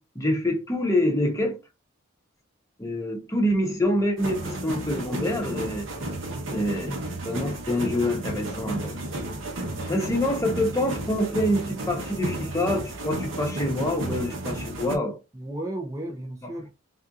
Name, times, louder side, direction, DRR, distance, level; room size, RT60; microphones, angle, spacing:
voice 1, 0.0-1.6 2.8-5.9 6.5-7.0 7.2-9.0 9.9-15.2 16.4-16.5, left 1 dB, 15° left, 0.7 m, -26 dB
sound 1, 4.2-15.0, right 1 dB, 65° right, 0.9 m, -33 dB
voice 2, 6.0-6.6 9.6-9.9 15.3-16.7, right 1 dB, 15° right, 0.4 m, -36 dB
3.5 x 2.7 x 2.3 m
head